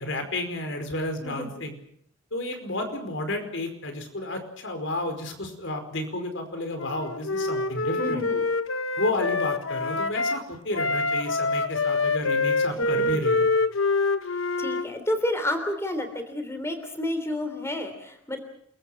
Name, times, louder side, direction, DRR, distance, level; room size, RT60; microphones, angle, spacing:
voice 1, 0.0-1.8 2.3-8.2 9.0-13.5, left 1 dB, 65° left, 6 dB, 5.0 m, -31 dB
Wind instrument woodwind instrument, 6.8-10.4 10.7-14.9, left 3 dB, 85° left, 1.2 m, -26 dB
voice 2, 8.0-8.4 12.9-13.2 14.3-18.4, left 1 dB, 15° left, 7 dB, 3.2 m, -30 dB
29.0 x 23.0 x 5.9 m, 0.69 s
head